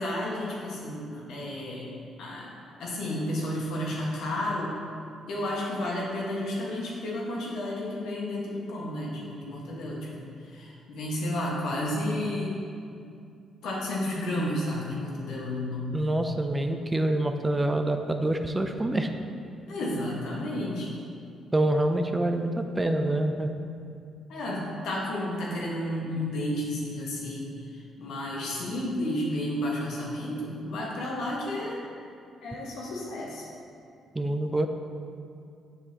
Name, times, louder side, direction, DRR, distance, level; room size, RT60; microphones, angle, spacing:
voice 1, 0.0-1.9 2.2-2.5 2.8-4.7 5.3-12.6 13.6-16.0 19.7-21.0 24.3-31.8 32.4-33.5, left 1 dB, 80° left, -4 dB, 1.5 m, -32 dB
voice 2, 15.9-19.2 21.5-23.5 34.1-34.7, right 1 dB, 15° right, 6 dB, 0.4 m, -26 dB
7.1 x 6.4 x 2.9 m, 2.4 s
cardioid pair, 90°, 0 cm